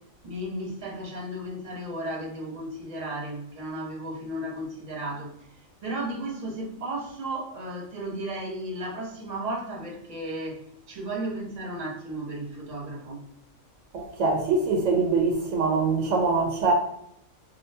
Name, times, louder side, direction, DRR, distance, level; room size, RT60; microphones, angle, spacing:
voice 1, 0.2-5.3 5.8-13.3, right 1 dB, 35° right, 0.9 m, -34 dB
voice 2, 13.9-16.7, right 4 dB, 75° right, 1.0 m, -23 dB
3.6 x 2.3 x 2.6 m
omnidirectional pair, 1.4 m